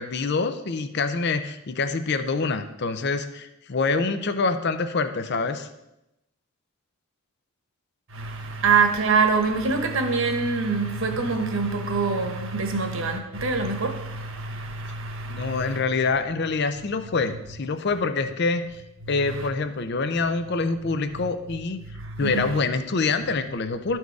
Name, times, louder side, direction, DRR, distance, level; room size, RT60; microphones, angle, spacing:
voice 1, 0.0-5.7 15.3-18.7 19.1-21.8 22.2-24.0, left 4 dB, 50° left, 0.5 m, -26 dB
voice 2, 8.1-15.8 19.3-19.5 22.2-22.5, right 4 dB, 60° right, 1.2 m, -25 dB
12.5 x 4.5 x 4.7 m
head